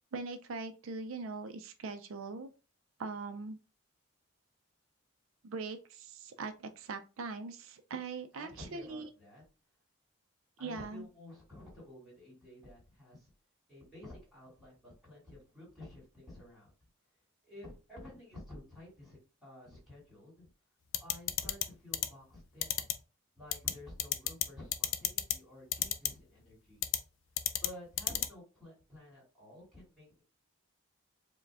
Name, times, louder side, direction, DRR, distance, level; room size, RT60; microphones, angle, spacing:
voice 1, 0.1-2.5 3.0-3.6 5.4-9.1 10.6-11.1, right 4 dB, 80° right, 8 dB, 0.5 m, -41 dB
voice 2, 8.3-9.4 10.6-13.3 13.7-16.7 17.4-20.5 21.0-22.7 23.4-26.8 27.6-30.2, left 1 dB, ahead, -4 dB, 2.3 m, -51 dB
sound 1, 20.9-21.6 21.9-22.1 22.6-22.9 23.5-23.7 24.0-24.4 24.7-25.3 25.7-26.1 26.8-27.0 27.4-27.7 28.0-28.3, left 12 dB, 70° left, 0.4 m, -30 dB
4.7 x 2.2 x 3.4 m, 0.32 s
head